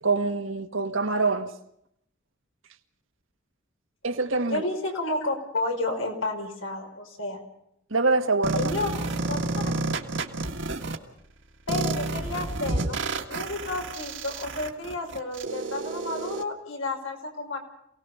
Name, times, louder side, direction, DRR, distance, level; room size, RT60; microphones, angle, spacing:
voice 1, 0.0-1.5 4.0-4.7 7.9-8.7, right 3 dB, 85° right, 1.8 m, -25 dB
voice 2, 4.5-7.4 8.5-9.4 9.6-9.7 11.7-13.0 13.3-17.6, left 2 dB, 90° left, 5.7 m, -31 dB
sound 1, 8.4-11.0 11.7-16.4, right 3 dB, 65° right, 1.9 m, -30 dB
28.0 x 18.5 x 5.7 m
head